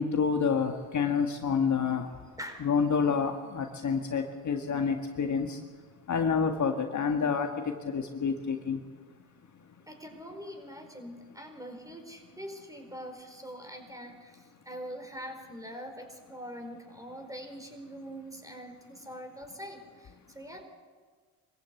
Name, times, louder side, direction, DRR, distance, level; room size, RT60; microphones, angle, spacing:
voice 1, 0.0-2.1 2.6-5.6 6.1-9.0 9.5-9.9, left 6 dB, 40° left, 4 dB, 1.8 m, -28 dB
voice 2, 9.9-20.6, equal, 10° right, 4 dB, 4.7 m, -43 dB
23.5 x 15.0 x 8.5 m, 1.5 s
supercardioid pair, 75°, 44 cm